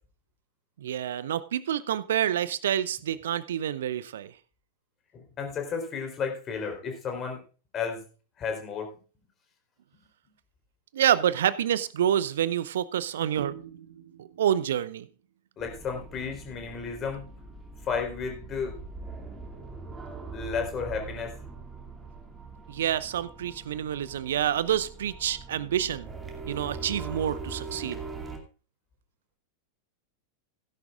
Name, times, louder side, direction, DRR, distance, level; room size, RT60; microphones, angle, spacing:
voice 1, 0.8-4.3 10.9-15.1 22.7-26.1 26.5-28.0, right 10 dB, 60° right, 0.6 m, -28 dB
voice 2, 5.1-7.4 7.7-8.0 8.4-8.9 15.6-17.2 17.8-18.8 20.3-21.3 26.4-26.5, left 6 dB, 30° left, 3.7 m, -32 dB
sound 1, 15.6-28.4, right 4 dB, 15° right, 2.4 m, -42 dB
16.5 x 10.5 x 2.5 m
figure-of-eight pair, 90°, 0 cm